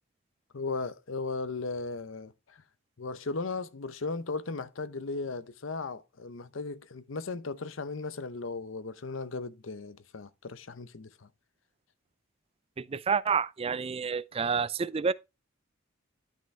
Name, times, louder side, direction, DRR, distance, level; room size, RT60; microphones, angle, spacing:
voice 1, 0.5-2.6 3.0-11.3, left 3 dB, 70° left, 0.8 m, -36 dB
voice 2, 12.8-15.1, right 5 dB, 30° right, 0.4 m, -29 dB
11.0 x 6.0 x 3.3 m
head